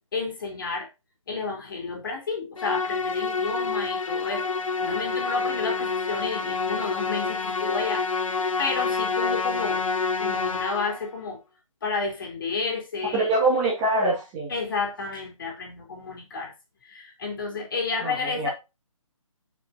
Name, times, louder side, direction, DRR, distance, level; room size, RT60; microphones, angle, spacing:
voice 1, 0.1-0.9 1.3-4.5 4.8-8.3 8.6-9.8 10.2-11.4 11.8-13.3 14.5-16.5 16.8-18.5, left 4 dB, 40° left, 3.5 m, -31 dB
Musical instrument, 2.6-11.1, left 4 dB, 75° left, 1.3 m, -28 dB
voice 2, 13.1-14.5 18.0-18.5, right 2 dB, 15° right, 2.0 m, -24 dB
9.8 x 6.0 x 2.7 m
hypercardioid pair, 170°, 17 cm